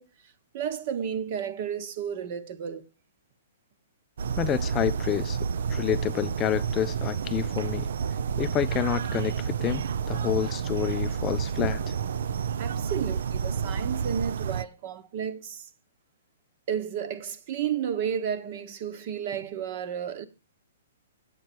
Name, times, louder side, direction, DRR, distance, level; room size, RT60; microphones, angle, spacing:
voice 1, 0.0-2.9 12.6-15.7 16.7-20.2, right 8 dB, 45° right, 1.1 m, -32 dB
sound 1, 4.2-14.6, right 6 dB, 70° right, 0.5 m, -30 dB
voice 2, 4.4-5.4 5.7-7.9 8.4-12.0, left 11 dB, 20° left, 0.4 m, -29 dB
8.8 x 8.4 x 4.5 m
hypercardioid pair, 150°, 0 cm